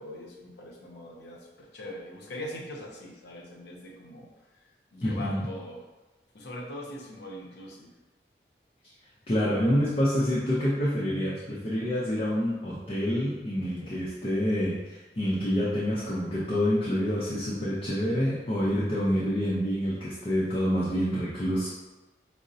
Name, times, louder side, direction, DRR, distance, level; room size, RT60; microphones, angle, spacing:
voice 1, 0.0-4.3 4.9-5.8 6.3-7.9 13.6-14.0, left 1 dB, 75° left, -1 dB, 0.6 m, -42 dB
voice 2, 5.0-5.5 9.3-21.7, equal, 30° left, -7 dB, 0.5 m, -27 dB
4.9 x 2.0 x 2.6 m, 1.1 s
head